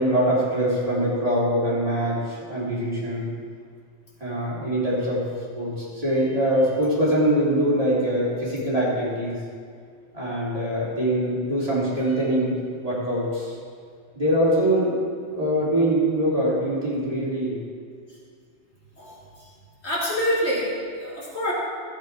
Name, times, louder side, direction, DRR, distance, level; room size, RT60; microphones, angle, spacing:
voice 1, 0.0-3.3 4.2-5.2 5.5-9.4 10.1-13.5 14.1-15.0 15.3-17.6, right 1 dB, 30° right, -8 dB, 3.5 m, -23 dB
voice 2, 19.8-21.5, equal, 60° left, -7 dB, 2.9 m, -26 dB
14.0 x 8.2 x 4.8 m, 2.1 s
omnidirectional pair, 1.2 m